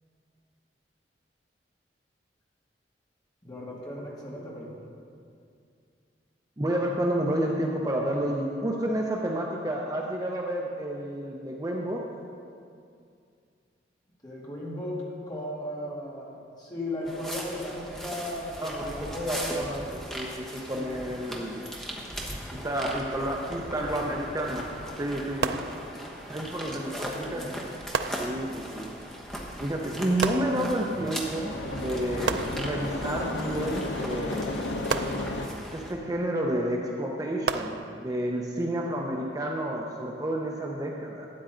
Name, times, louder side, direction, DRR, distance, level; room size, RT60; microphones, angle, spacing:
voice 1, 3.4-4.8 14.2-16.3 16.6-19.6 20.7-20.9 26.6-27.6, left 1 dB, 25° left, -6 dB, 2.4 m, -36 dB
voice 2, 6.6-12.0 18.6-21.6 22.5-24.7 25.0-25.6 26.3-27.4 28.2-28.9 29.6-34.6 35.7-41.3, right 1 dB, 20° right, -1 dB, 0.7 m, -30 dB
sound 1, 17.0-35.9, equal, 5° left, 1.1 m, -39 dB
sound 2, 25.4-26.4 27.9-28.8 30.2-31.1 32.3-33.2 34.9-35.8 37.5-38.4, right 5 dB, 65° right, 0.4 m, -33 dB
sound 3, 29.7-35.5, left 2 dB, 75° left, 0.8 m, -34 dB
12.5 x 9.0 x 3.8 m, 2.4 s
head